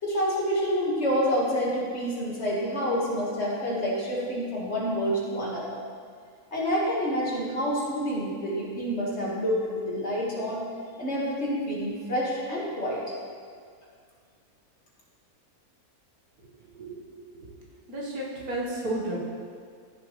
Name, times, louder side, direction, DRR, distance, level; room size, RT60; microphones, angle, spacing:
voice 1, 0.0-5.8 6.5-10.6 11.0-13.0, equal, 45° left, -5 dB, 2.1 m, -28 dB
voice 2, 16.8-17.5 17.9-19.2, right 1 dB, 75° right, -4 dB, 2.1 m, -33 dB
14.0 x 7.0 x 3.3 m, 2.1 s
omnidirectional pair, 1.6 m